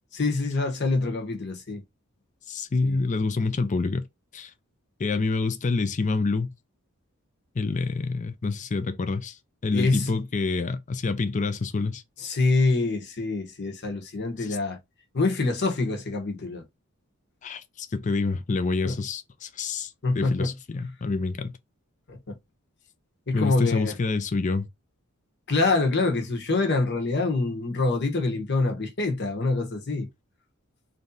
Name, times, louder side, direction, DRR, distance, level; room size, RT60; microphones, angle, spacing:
voice 1, 0.1-1.8 2.8-3.0 9.7-10.1 12.2-14.8 15.1-16.6 18.8-19.0 20.0-20.5 22.1-22.3 23.3-24.0 25.5-30.1, left 3 dB, 50° left, 1.1 m, -25 dB
voice 2, 2.5-4.1 4.3-4.5 5.0-6.5 7.6-9.4 9.6-12.0 17.4-21.5 23.3-24.7, left 3 dB, 35° left, 0.5 m, -27 dB
3.3 x 2.7 x 3.9 m
head